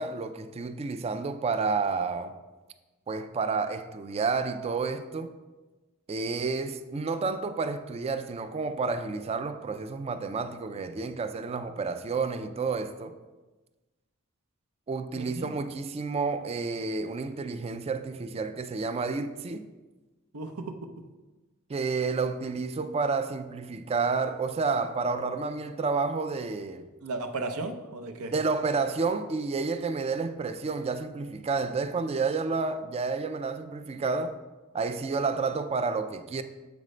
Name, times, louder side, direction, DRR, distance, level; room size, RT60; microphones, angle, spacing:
voice 1, 0.0-2.3 3.1-5.3 6.1-13.2 14.9-19.7 21.7-26.9 28.3-34.4 34.7-36.4, right 4 dB, 30° right, 0.3 m, -30 dB
voice 2, 15.1-15.5 20.3-20.9 27.0-28.3, right 3 dB, 90° right, 0.7 m, -35 dB
7.4 x 5.1 x 3.2 m
head